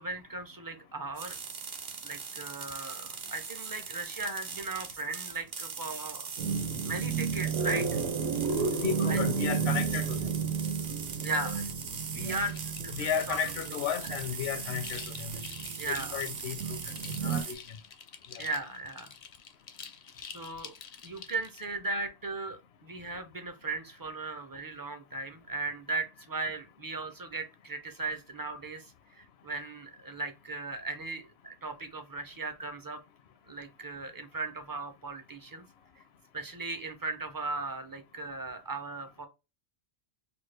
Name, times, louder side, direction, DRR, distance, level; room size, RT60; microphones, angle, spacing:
voice 1, 0.0-1.4 2.0-6.3 6.9-7.8 9.1-9.2 11.2-11.6 12.1-12.6 12.8-13.4 14.0-14.2 15.8-16.2 18.4-19.1 20.3-20.7 21.0-28.8 29.2-33.0 33.5-35.6 36.3-39.3, right 3 dB, 30° right, 0.4 m, -37 dB
sound 1, 1.1-17.5, right 6 dB, 55° right, 0.8 m, -40 dB
sound 2, 6.4-17.4, right 5 dB, 85° right, 0.9 m, -33 dB
voice 2, 8.7-10.3 11.3-11.5 12.2-12.4 12.9-15.4 15.9-17.6, left 8 dB, 80° left, 0.8 m, -34 dB
sound 3, 12.2-21.6, left 6 dB, 50° left, 0.5 m, -48 dB
4.7 x 2.2 x 3.2 m
omnidirectional pair, 1.1 m